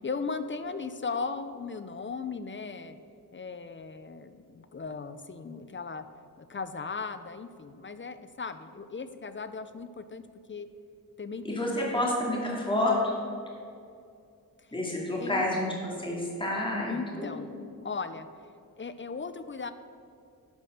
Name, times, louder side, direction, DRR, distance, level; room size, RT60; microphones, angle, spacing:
voice 1, 0.0-3.0 3.3-6.1 6.4-10.2 10.5-10.7 11.2-12.0 15.2-15.5 16.9-17.5 17.8-18.3 18.8-19.7, left 4 dB, 30° left, 11 dB, 0.5 m, -37 dB
voice 2, 11.4-13.2 14.7-17.4, left 1 dB, 15° left, -3 dB, 2.4 m, -29 dB
11.5 x 5.2 x 6.5 m, 2.4 s
cardioid pair, 70°, 37 cm